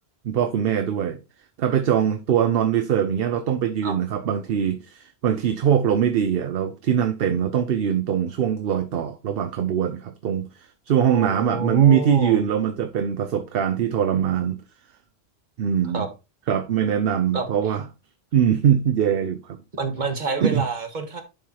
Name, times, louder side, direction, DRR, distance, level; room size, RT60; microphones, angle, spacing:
voice 1, 0.2-1.2 1.6-14.6 15.6-16.1 16.5-17.8 18.3-19.6 20.4-20.6, right 9 dB, 65° right, 0.8 m, -22 dB
voice 2, 11.1-12.4 15.9-16.1 17.3-17.5 19.8-21.2, right 3 dB, 45° right, 1.5 m, -28 dB
11.0 x 4.7 x 2.9 m
omnidirectional pair, 1.1 m